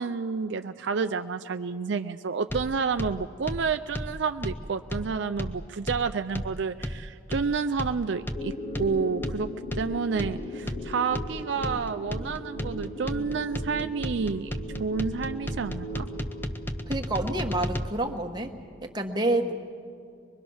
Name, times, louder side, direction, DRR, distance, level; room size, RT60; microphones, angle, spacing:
voice 1, 0.0-9.5 9.7-14.5 14.8-16.1, right 5 dB, 65° right, 9 dB, 0.4 m, -30 dB
sound 1, 2.5-17.9, equal, 10° left, 0.6 m, -34 dB
sound 2, 8.4-17.4, equal, 35° left, 0.9 m, -39 dB
voice 2, 16.9-18.5 18.8-19.5, right 1 dB, 20° right, 3 dB, 1.2 m, -28 dB
24.0 x 22.0 x 6.3 m, 2.3 s
head